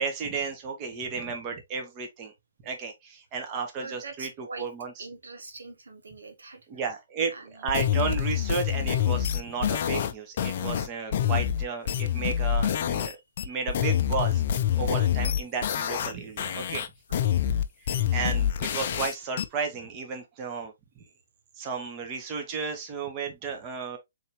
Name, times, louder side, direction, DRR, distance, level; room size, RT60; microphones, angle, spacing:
voice 1, 0.0-2.3 2.6-4.9 6.7-7.3 7.6-13.2 13.4-14.4 14.7-16.8 17.8-21.0 21.6-24.0, right 5 dB, 30° right, 1.2 m, -33 dB
voice 2, 3.8-4.7 5.0-6.7 7.3-7.8 13.0-13.6 14.7-15.0 17.1-17.6, right 3 dB, 85° right, 1.1 m, -44 dB
sound 1, 7.7-13.1 13.4-16.1 16.4-19.4, left 9 dB, 50° left, 0.5 m, -26 dB
4.2 x 3.5 x 3.1 m
hypercardioid pair, 140°, 0 cm